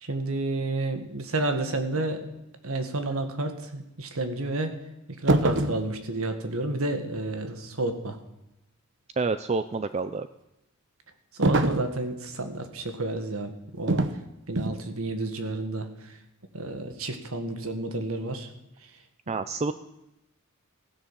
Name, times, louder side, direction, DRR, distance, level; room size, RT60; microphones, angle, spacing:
voice 1, 0.0-2.2 2.6-4.7 5.2-8.2 11.3-14.0 14.5-16.2 16.5-18.5, right 2 dB, 85° right, 8 dB, 1.8 m, -30 dB
sound 1, 5.3-5.9 11.4-11.9 13.9-14.2 14.6-14.8, right 2 dB, 60° right, 1.0 m, -24 dB
voice 2, 9.2-10.3 19.3-19.7, right 4 dB, 30° right, 12 dB, 0.5 m, -28 dB
15.5 x 10.5 x 7.5 m, 0.92 s
head